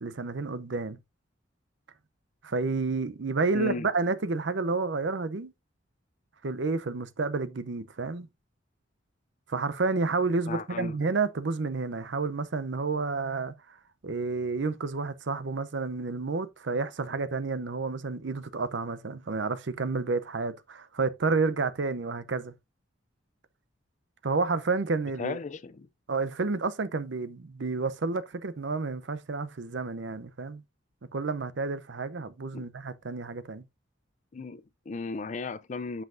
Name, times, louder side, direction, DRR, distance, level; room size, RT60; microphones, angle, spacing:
voice 1, 0.0-1.0 2.4-5.5 6.4-8.3 9.5-13.5 14.0-22.5 24.2-25.4 26.1-30.6 31.1-33.6, right 3 dB, 60° right, 0.6 m, -30 dB
voice 2, 3.5-3.9 10.5-11.0 25.2-25.9 32.5-32.6 34.3-36.0, left 4 dB, 40° left, 0.4 m, -35 dB
7.8 x 5.6 x 2.5 m
head